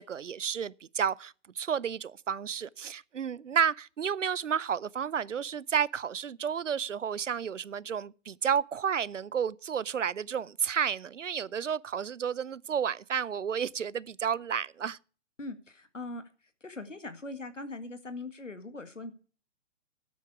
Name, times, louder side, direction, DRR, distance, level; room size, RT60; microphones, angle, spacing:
voice 1, 0.0-15.0, right 7 dB, 80° right, 0.7 m, -31 dB
voice 2, 15.4-16.2 16.6-19.1, left 2 dB, 90° left, 1.9 m, -41 dB
13.0 x 9.2 x 4.8 m
figure-of-eight pair, 120°, 37 cm